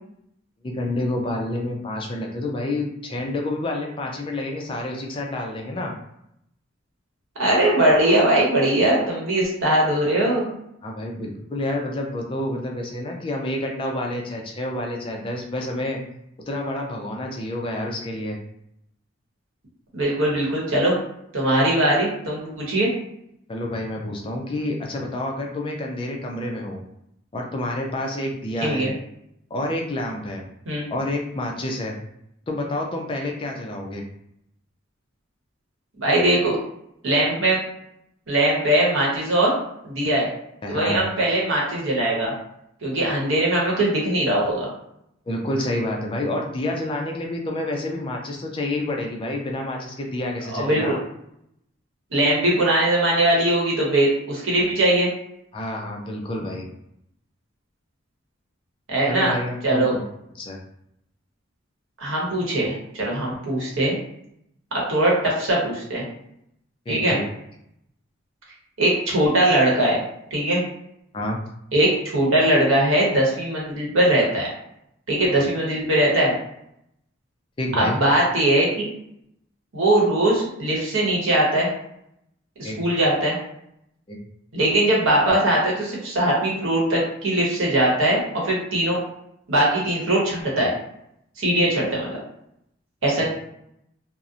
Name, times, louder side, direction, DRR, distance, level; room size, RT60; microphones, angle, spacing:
voice 1, 0.6-5.9 10.8-16.0 16.5-18.4 23.5-26.8 27.3-28.9 29.5-30.4 30.9-32.0 32.5-34.0 40.6-41.0 45.3-51.0 55.5-56.7 59.1-60.0 60.4-60.6 66.9-67.2 71.1-71.4 77.6-78.0 82.6-82.8 84.1-84.2 93.2-93.3, left 1 dB, 25° left, 1 dB, 0.3 m, -28 dB
voice 2, 7.4-10.5 19.9-20.9 21.3-22.9 28.6-28.9 30.7-30.9 36.0-36.6 37.0-37.6 38.3-39.5 39.8-40.3 40.7-42.3 42.8-44.7 50.5-51.0 52.1-55.1 58.9-59.3 59.6-59.9 62.0-64.0 64.7-66.0 66.9-67.2 68.8-70.0 70.3-70.6 71.7-74.5 75.1-76.3 77.8-78.9 79.7-81.7 82.6-83.4 84.5-89.0 89.5-90.7 91.4-92.2 93.0-93.3, right 1 dB, 85° right, -3 dB, 1.0 m, -20 dB
2.7 x 2.0 x 2.4 m, 0.76 s
head